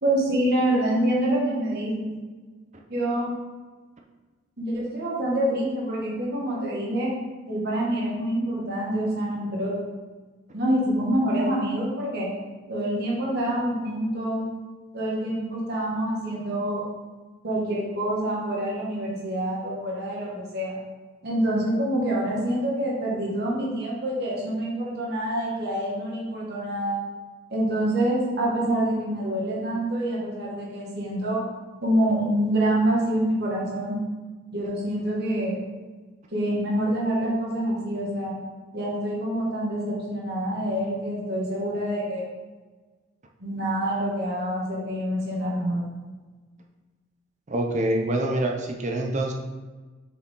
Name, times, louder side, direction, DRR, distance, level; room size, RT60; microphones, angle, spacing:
voice 1, 0.0-2.1 2.9-3.3 4.6-7.1 7.5-9.8 10.5-12.3 12.7-14.4 14.9-16.8 17.4-20.7 21.2-27.0 27.5-31.4 31.8-34.0 34.5-35.6 36.3-38.3 38.7-42.2 43.4-45.8, right 1 dB, 50° right, -5 dB, 1.7 m, -26 dB
voice 2, 47.5-49.3, right 1 dB, 35° right, 1 dB, 0.6 m, -25 dB
6.7 x 5.0 x 3.7 m, 1.3 s
head